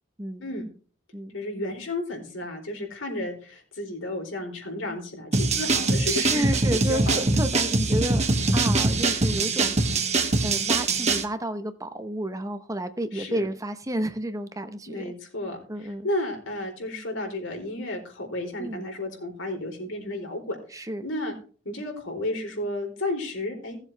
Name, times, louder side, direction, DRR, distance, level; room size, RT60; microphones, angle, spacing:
voice 1, 1.3-6.5 6.7-7.2 13.1-13.4 14.9-15.6 16.0-21.3 21.6-23.8, left 1 dB, 85° left, 4.1 m, -32 dB
sound 1, 5.3-11.2, right 3 dB, 35° right, 1.5 m, -23 dB
voice 2, 6.1-8.2 8.5-9.7 10.4-15.1 15.7-16.1 18.6-18.9 20.7-21.0, right 1 dB, 20° right, 0.9 m, -31 dB
16.5 x 7.4 x 3.3 m
head